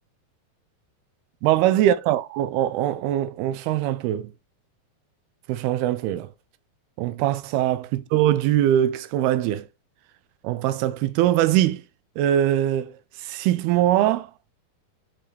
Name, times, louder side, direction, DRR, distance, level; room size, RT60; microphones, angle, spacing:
voice 1, 1.4-4.3 5.5-6.3 7.0-9.7 10.4-11.8 12.2-12.9 13.2-14.3, right 12 dB, 90° right, 2.6 m, -22 dB
6.5 x 5.8 x 3.3 m
omnidirectional pair, 4.4 m